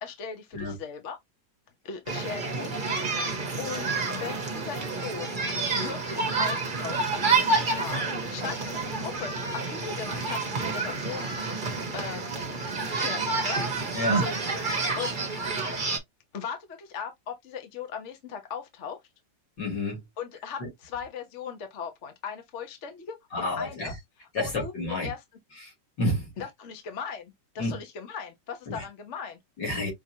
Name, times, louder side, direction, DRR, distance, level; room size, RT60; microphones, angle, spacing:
voice 1, 0.0-1.2 1.8-3.3 3.6-5.3 5.7-11.3 11.9-12.2 12.9-13.6 14.1-14.4 14.9-15.2 16.3-19.0 20.2-23.9 24.2-25.2 26.4-29.4, left 6 dB, 45° left, 1.1 m, -38 dB
sound 1, 2.1-16.0, right 3 dB, 30° right, 1.1 m, -29 dB
voice 2, 19.6-20.0 20.6-20.7 23.3-23.9 24.3-25.1 26.0-26.3 27.6-27.7 28.7-28.8 29.6-29.9, left 2 dB, 70° left, 3.6 m, -29 dB
5.9 x 2.9 x 2.8 m
omnidirectional pair, 2.0 m